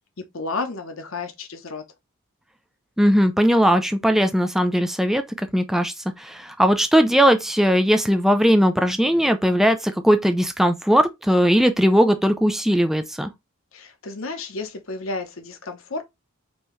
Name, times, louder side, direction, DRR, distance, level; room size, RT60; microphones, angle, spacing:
voice 1, 0.3-1.8 13.7-16.0, left 3 dB, 65° left, 0.9 m, -32 dB
voice 2, 3.0-5.2 5.5-13.3, equal, ahead, 0.3 m, -19 dB
5.5 x 2.9 x 3.1 m
head